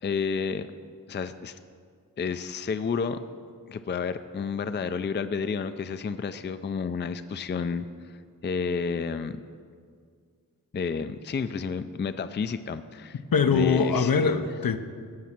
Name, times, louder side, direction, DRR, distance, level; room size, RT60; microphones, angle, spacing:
voice 1, 0.0-0.7 1.1-1.6 2.2-3.2 3.7-8.2 8.4-9.4 10.7-13.2 13.5-14.1, left 5 dB, 30° left, 11 dB, 0.4 m, -30 dB
voice 2, 13.3-14.8, left 5 dB, 70° left, 9 dB, 0.7 m, -22 dB
16.0 x 6.2 x 5.9 m, 2.1 s
wide cardioid pair, 95°, 36 cm